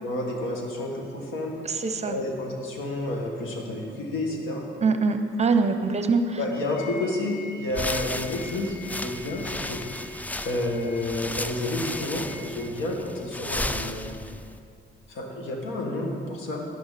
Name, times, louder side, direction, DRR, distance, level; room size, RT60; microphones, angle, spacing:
voice 1, 0.0-1.5 2.0-4.7 6.4-9.8 10.4-14.1 15.1-16.7, left 1 dB, 85° left, 0 dB, 1.8 m, -30 dB
voice 2, 1.6-2.2 4.8-6.4, right 4 dB, 35° right, 8 dB, 0.8 m, -23 dB
sound 1, 6.5-12.4, left 1 dB, 55° left, 1.2 m, -45 dB
sound 2, 7.7-14.6, left 1 dB, 10° left, 0.3 m, -34 dB
11.0 x 10.5 x 4.2 m, 2.4 s
cardioid pair, 90°, 20 cm